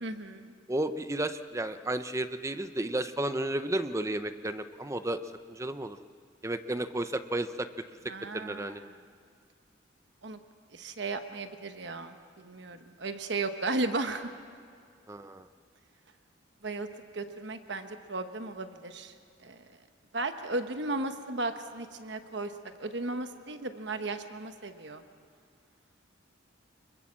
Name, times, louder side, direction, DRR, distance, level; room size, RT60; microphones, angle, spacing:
voice 1, 0.0-0.5 8.1-8.9 10.2-10.4 10.7-14.3 16.6-16.9 17.1-19.1 19.4-19.6 20.1-22.5 22.8-25.0, right 2 dB, 60° right, 8 dB, 1.1 m, -35 dB
voice 2, 0.7-5.2 5.5-6.0 6.4-7.7 8.3-8.8 15.1-15.4, right 1 dB, 15° right, 11 dB, 0.6 m, -32 dB
25.0 x 22.0 x 7.4 m, 2.2 s
head